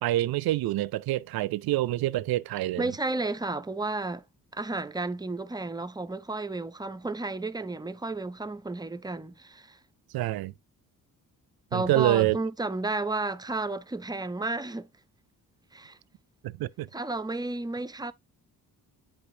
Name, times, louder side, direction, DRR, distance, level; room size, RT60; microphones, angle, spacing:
voice 1, 0.0-2.9 10.1-10.5 11.7-12.4 16.4-16.9, right 15 dB, 85° right, 0.5 m, -26 dB
voice 2, 2.8-4.2 4.5-9.8 11.7-14.9 15.7-16.0 16.9-18.1, right 3 dB, 10° right, 0.3 m, -32 dB
8.7 x 5.1 x 2.6 m
cardioid pair, 120°, 36 cm